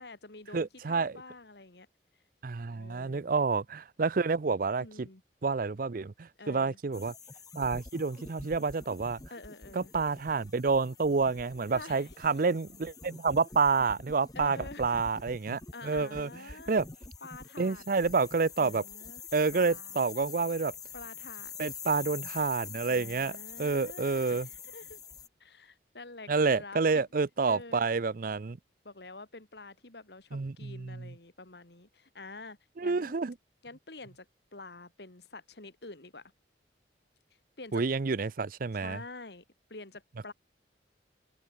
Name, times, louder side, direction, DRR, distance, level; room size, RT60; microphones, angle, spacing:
voice 1, 0.0-1.9 2.7-3.5 4.8-5.2 6.4-6.8 9.3-9.9 11.7-12.2 14.3-15.0 15.7-16.8 17.2-18.1 18.6-19.2 19.5-20.0 20.9-21.5 22.9-25.0 25.4-27.1 27.4-27.9 28.8-33.2 33.6-36.3 37.6-37.8 38.7-39.4 39.7-40.3, left 3 dB, 65° left, 2.5 m, -48 dB
voice 2, 0.5-1.1 2.4-5.1 5.4-7.1 7.6-9.2 9.8-16.3 16.7-16.8 17.6-18.8 19.3-20.7 21.6-23.3 23.6-24.5 26.3-28.6 30.3-31.0 32.8-33.3 37.7-39.0, right 4 dB, 50° right, 0.6 m, -29 dB
sound 1, 6.9-25.3, left 5 dB, 20° left, 1.3 m, -46 dB
head